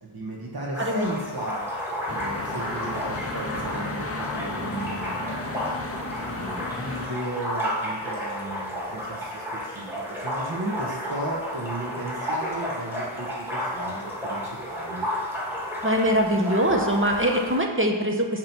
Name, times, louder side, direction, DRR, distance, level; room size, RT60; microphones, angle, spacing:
voice 1, 0.0-1.7 2.1-5.2 6.2-14.4 14.7-15.1, right 2 dB, 50° right, -3 dB, 1.1 m, -35 dB
sound 1, 0.7-17.6, equal, 5° right, 1.6 m, -32 dB
sound 2, 2.1-7.1, left 3 dB, 30° left, 0.5 m, -34 dB
voice 2, 15.8-18.4, equal, 25° right, 2 dB, 0.8 m, -23 dB
8.5 x 3.0 x 5.8 m, 1.4 s
wide cardioid pair, 60°, 49 cm